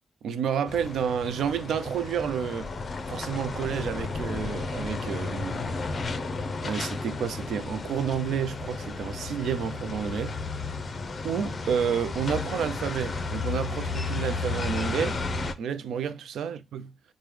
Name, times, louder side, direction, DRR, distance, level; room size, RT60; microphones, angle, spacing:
voice 1, 0.2-2.7 3.1-5.7 6.6-10.4 11.2-15.2 15.6-16.9, right 7 dB, 75° right, 0.3 m, -30 dB
sound 1, 0.7-15.5, left 3 dB, 40° left, 0.5 m, -33 dB
3.4 x 2.1 x 3.1 m
cardioid pair, 80°, 0 cm